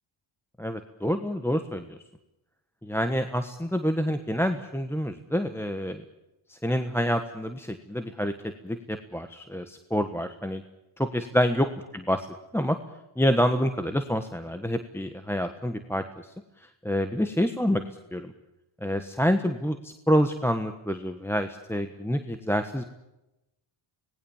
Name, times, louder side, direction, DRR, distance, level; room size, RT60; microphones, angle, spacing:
voice 1, 0.6-2.0 2.8-6.0 6.5-10.6 11.0-11.7 11.9-12.3 12.5-12.8 13.2-16.0 16.8-17.8 18.1-18.3 18.8-22.8, equal, 5° left, 6 dB, 1.3 m, -27 dB
26.0 x 19.5 x 7.2 m, 0.92 s
cardioid pair, 120°, 50 cm